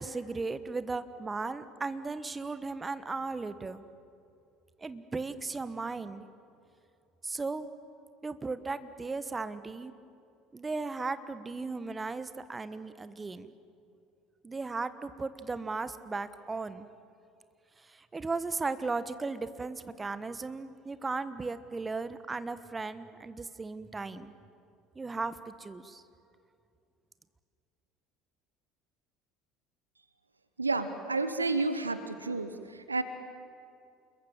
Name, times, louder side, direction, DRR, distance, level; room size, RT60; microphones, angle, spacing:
voice 1, 0.0-3.8 4.8-6.3 7.2-7.7 8.2-9.9 10.5-13.5 14.4-16.9 17.8-24.3 24.9-26.0, right 3 dB, 20° right, 13 dB, 1.3 m, -36 dB
voice 2, 30.6-33.0, right 3 dB, 85° right, 11 dB, 1.0 m, -31 dB
28.0 x 22.0 x 7.4 m, 2.5 s
figure-of-eight pair, 65°, 0 cm